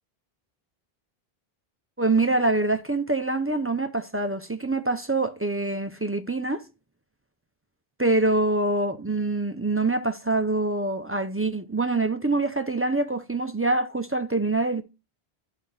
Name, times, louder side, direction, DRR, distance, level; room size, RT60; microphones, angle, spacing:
voice 1, 2.0-6.6 8.0-14.8, right 2 dB, 20° right, 0.3 m, -25 dB
12.0 x 5.0 x 2.6 m
omnidirectional pair, 1.0 m